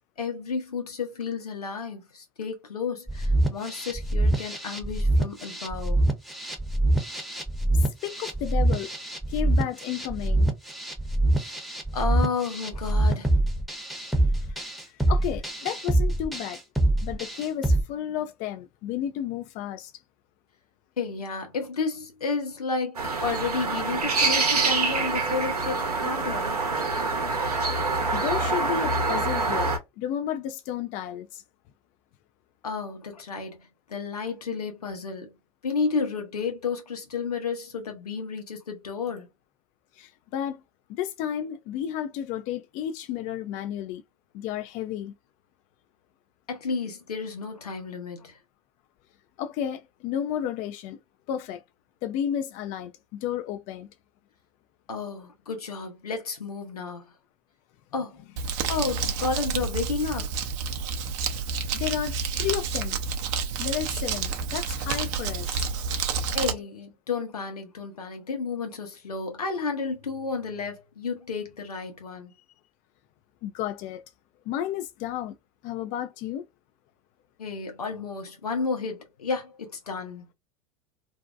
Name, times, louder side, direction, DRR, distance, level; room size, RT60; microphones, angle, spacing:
voice 1, 0.2-6.0 11.9-13.3 21.0-26.6 32.6-35.3 35.6-39.3 46.5-48.4 54.9-57.1 57.9-58.2 58.7-60.3 65.9-66.0 66.3-72.3 77.4-80.3, left 4 dB, 85° left, 0.9 m, -32 dB
sound 1, 3.1-17.8, right 1 dB, ahead, 0.7 m, -25 dB
voice 2, 7.7-8.9 9.3-10.5 13.9-14.3 14.6-16.6 17.0-19.9 28.1-31.4 39.9-40.6 40.9-44.0 44.3-45.1 49.4-51.0 51.3-51.6 52.0-53.9 61.7-63.0 63.6-65.7 73.4-74.0 74.5-75.4 75.6-76.5, left 10 dB, 45° left, 0.4 m, -32 dB
sound 2, 22.9-29.8, right 3 dB, 85° right, 0.8 m, -26 dB
Crumpling crinkling, 58.4-66.5, right 5 dB, 55° right, 0.6 m, -29 dB
2.6 x 2.1 x 2.4 m
hypercardioid pair, 85°, 19 cm